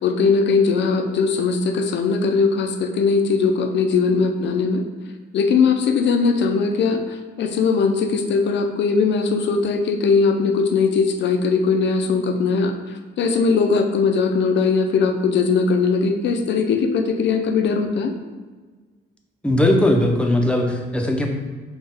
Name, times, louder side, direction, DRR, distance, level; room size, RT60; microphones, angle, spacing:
voice 1, 0.0-4.8 5.3-18.1, left 5 dB, 65° left, 5 dB, 0.5 m, -20 dB
voice 2, 19.4-21.3, left 1 dB, 5° left, 2 dB, 0.6 m, -18 dB
5.4 x 2.4 x 3.5 m, 1.4 s
cardioid pair, 90°, 20 cm